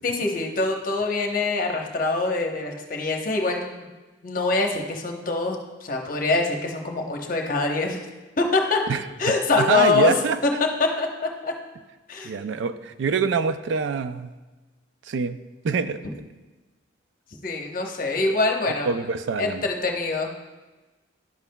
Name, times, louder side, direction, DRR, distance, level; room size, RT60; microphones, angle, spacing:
voice 1, 0.0-3.9 4.2-8.0 8.4-8.8 9.2-10.1 10.4-10.5 10.8-11.1 11.4-11.5 12.1-12.3 17.4-18.9 19.4-20.4, left 3 dB, 45° left, 2 dB, 0.8 m, -24 dB
voice 2, 8.9-10.6 12.2-14.3 15.0-15.4 15.6-16.0 18.2-18.4 18.8-19.7, right 5 dB, 75° right, 12 dB, 0.4 m, -25 dB
10.5 x 7.1 x 2.2 m, 1.2 s
head